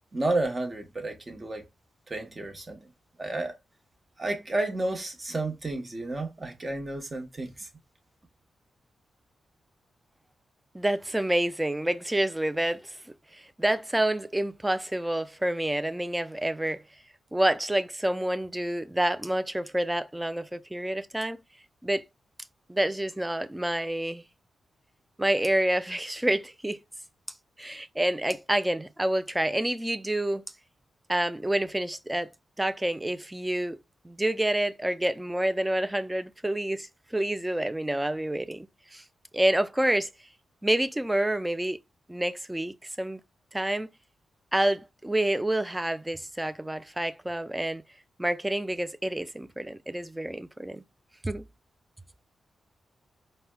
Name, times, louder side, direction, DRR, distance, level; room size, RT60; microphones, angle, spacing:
voice 1, 0.1-1.6 2.1-2.8 3.2-3.5 4.2-7.7, right 2 dB, 30° right, 0.9 m, -31 dB
voice 2, 10.7-13.0 13.3-16.8 17.3-21.4 21.8-22.0 22.7-24.2 25.2-26.8 27.6-30.4 31.1-32.3 32.6-33.8 34.0-38.7 38.9-39.0 39.3-40.1 40.6-41.8 42.1-43.2 43.5-43.9 44.5-47.8 48.2-50.8 51.2-51.5, right 1 dB, 10° right, 0.3 m, -28 dB
4.2 x 2.0 x 2.2 m
cardioid pair, 70°, 0 cm